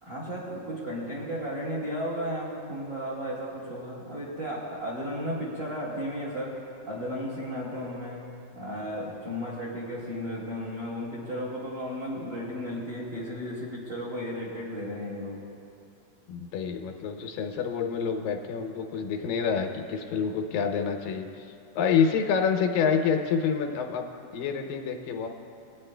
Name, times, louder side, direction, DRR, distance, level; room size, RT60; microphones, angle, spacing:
voice 1, 0.0-8.2 8.5-15.4, equal, 40° right, -7 dB, 1.8 m, -34 dB
voice 2, 16.3-24.1 24.3-25.3, left 6 dB, 90° left, 4 dB, 2.5 m, -27 dB
24.0 x 9.2 x 2.2 m, 2.7 s
omnidirectional pair, 3.9 m